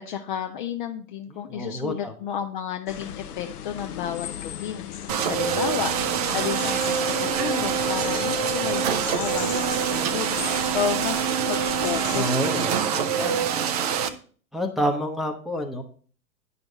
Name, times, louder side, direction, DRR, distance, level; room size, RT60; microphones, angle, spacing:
voice 1, 0.0-5.9 6.3-13.5, left 9 dB, 30° left, 6 dB, 0.5 m, -32 dB
voice 2, 1.5-2.1 12.1-12.8 14.5-15.8, equal, ahead, 1 dB, 0.7 m, -28 dB
sound 1, 2.9-12.3, left 9 dB, 65° left, 0.8 m, -37 dB
sound 2, 5.1-14.1, right 7 dB, 25° right, 0.4 m, -25 dB
9.7 x 5.6 x 3.9 m, 0.43 s
figure-of-eight pair, 100°, 48 cm